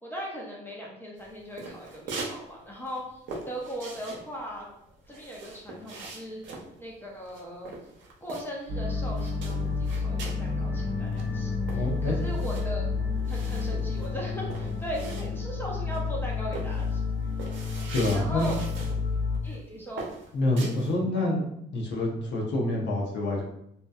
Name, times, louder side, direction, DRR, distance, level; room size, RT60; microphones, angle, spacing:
voice 1, 0.0-4.7 5.1-7.7 8.2-12.9 13.3-17.0 18.1-18.6 19.4-20.1, equal, 10° left, -3 dB, 0.6 m, -38 dB
sound 1, 1.2-2.4 2.7-8.8 9.1-10.5 10.8-10.9 11.1-15.6 15.9-16.2 16.5-19.0 19.3-19.6 20.0-21.0, right 3 dB, 70° right, 0.6 m, -42 dB
sound 2, 8.7-19.4, left 4 dB, 30° right, 0.9 m, -30 dB
voice 2, 11.7-12.2 17.9-18.5 20.3-23.4, left 2 dB, 65° left, -2 dB, 0.6 m, -27 dB
2.7 x 2.2 x 2.2 m, 0.78 s
cardioid pair, 90°, 20 cm